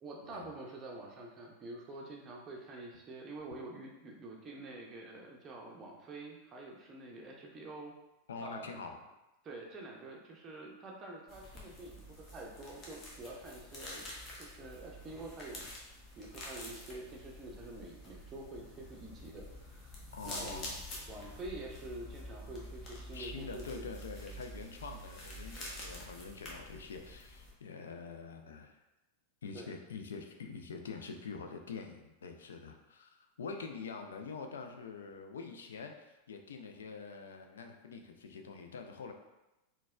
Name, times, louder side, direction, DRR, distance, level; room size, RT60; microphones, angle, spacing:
voice 1, 0.0-7.9 8.4-8.8 9.4-14.1 14.4-15.7 16.2-20.0 20.2-20.7 21.1-23.9 29.5-29.7, right 2 dB, 25° right, -2 dB, 0.5 m, -47 dB
voice 2, 8.3-9.0 20.1-20.8 23.1-28.8 29.4-39.1, left 5 dB, 70° left, 4 dB, 0.3 m, -45 dB
sound 1, 11.3-27.5, left 1 dB, 30° left, 0.8 m, -48 dB
4.0 x 2.2 x 2.3 m, 0.99 s
figure-of-eight pair, 90°, 0 cm